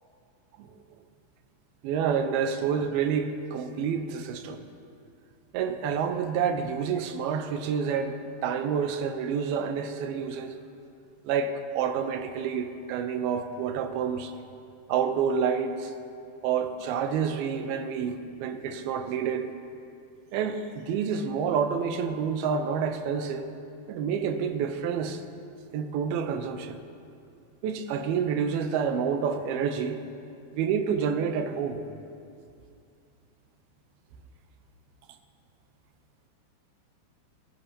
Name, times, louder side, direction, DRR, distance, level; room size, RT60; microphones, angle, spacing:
voice 1, 1.8-4.6 5.5-10.6 11.2-14.3 14.9-15.9 16.4-19.5 20.3-23.5 23.9-25.2 25.7-26.8 27.6-30.0 30.5-31.8, right 7 dB, 90° right, 7 dB, 2.6 m, -28 dB
20.0 x 18.0 x 2.8 m, 2.4 s
omnidirectional pair, 4.4 m